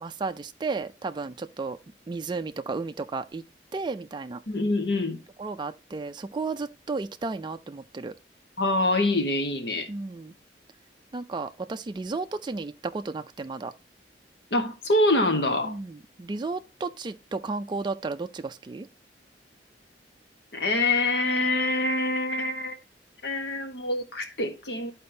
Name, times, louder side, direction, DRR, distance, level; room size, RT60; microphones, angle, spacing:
voice 1, 0.0-1.8 2.1-3.4 3.7-4.4 5.4-8.1 9.9-10.3 11.1-13.7 15.6-18.9, right 3 dB, 25° right, 0.4 m, -33 dB
voice 2, 4.5-5.2 8.6-9.9 14.5-15.7 20.5-22.8 23.2-24.9, left 2 dB, 70° left, 1.3 m, -25 dB
12.5 x 4.3 x 2.7 m
head